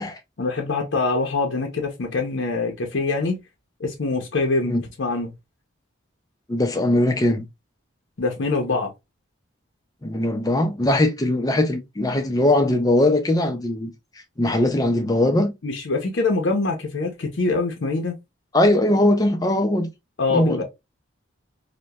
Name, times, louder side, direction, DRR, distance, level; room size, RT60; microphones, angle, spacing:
voice 1, 0.4-3.4 3.8-5.3 8.2-8.9 15.6-18.1 20.2-20.6, left 3 dB, 65° left, 0.6 m, -24 dB
voice 2, 6.5-7.4 10.0-13.9 14.4-15.5 18.5-19.9 20.3-20.6, left 1 dB, 20° left, 0.4 m, -20 dB
2.8 x 2.1 x 2.2 m
head